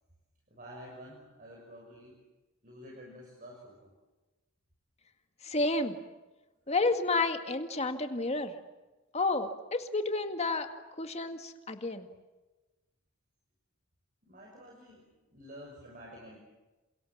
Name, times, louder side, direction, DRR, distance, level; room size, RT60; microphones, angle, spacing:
voice 1, 0.5-2.1 2.6-3.9 14.2-16.4, equal, 40° right, -1 dB, 6.3 m, -50 dB
voice 2, 5.4-6.0 6.7-8.5 9.1-10.7 11.0-12.1, left 3 dB, 30° left, 7 dB, 2.0 m, -30 dB
28.5 x 28.0 x 7.4 m, 1.1 s
head